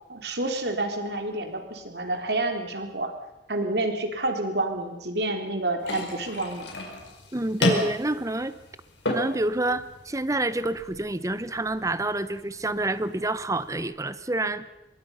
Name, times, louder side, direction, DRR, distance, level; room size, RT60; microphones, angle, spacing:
voice 1, 0.1-3.1 3.5-6.7, right 2 dB, 65° right, 5 dB, 3.5 m, -29 dB
sound 1, 5.8-13.8, left 1 dB, 85° left, 4.9 m, -33 dB
voice 2, 7.3-8.5 9.1-14.7, right 2 dB, 20° right, 14 dB, 0.9 m, -28 dB
25.5 x 22.0 x 5.6 m, 0.93 s
head